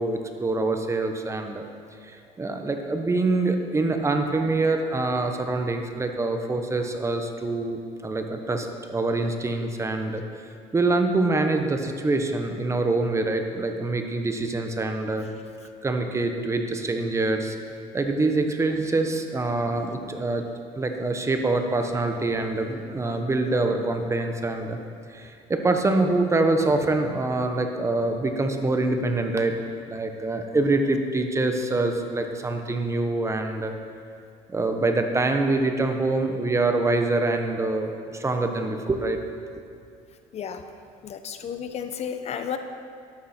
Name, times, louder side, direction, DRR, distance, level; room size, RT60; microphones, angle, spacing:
voice 1, 0.0-1.6 2.0-10.2 10.7-15.3 15.8-17.6 17.9-20.4 20.8-24.8 25.1-29.5 29.9-33.7 34.5-39.2, right 2 dB, 20° right, 5 dB, 1.2 m, -25 dB
voice 2, 41.0-42.6, left 8 dB, 45° left, 8 dB, 0.9 m, -32 dB
13.0 x 11.5 x 4.4 m, 2.4 s
cardioid pair, 105°, 15 cm